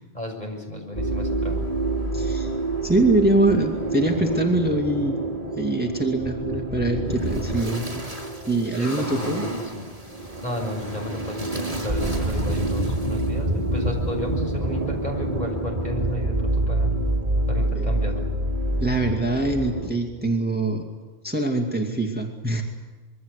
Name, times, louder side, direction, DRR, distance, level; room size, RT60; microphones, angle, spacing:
voice 1, 0.1-1.6 8.8-9.8 10.4-16.9 17.5-18.2, left 1 dB, 40° left, 1 dB, 6.6 m, -33 dB
sound 1, 0.9-19.9, right 1 dB, 45° right, 5.3 m, -27 dB
voice 2, 2.1-2.5 2.8-5.2 5.6-8.0 8.5-9.5 17.7-17.9 18.8-20.8 21.2-22.6, right 2 dB, 10° right, 1 dB, 2.3 m, -23 dB
26.5 x 23.0 x 8.3 m, 1.3 s
omnidirectional pair, 1.1 m